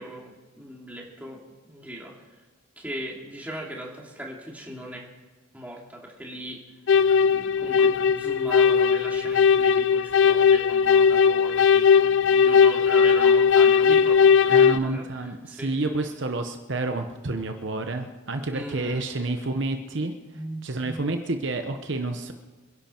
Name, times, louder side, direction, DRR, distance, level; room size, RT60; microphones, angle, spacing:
voice 1, 0.0-1.4 1.7-2.1 2.8-5.1 5.5-6.6 7.2-15.0 15.5-15.7 18.5-19.0 20.3-21.0, equal, 5° right, -2 dB, 2.6 m, -38 dB
sound 1, 6.9-14.8, left 6 dB, 60° left, 0.4 m, -18 dB
voice 2, 14.5-20.1 20.6-22.3, right 2 dB, 55° right, 6 dB, 0.9 m, -29 dB
26.5 x 11.0 x 4.5 m, 1.3 s
head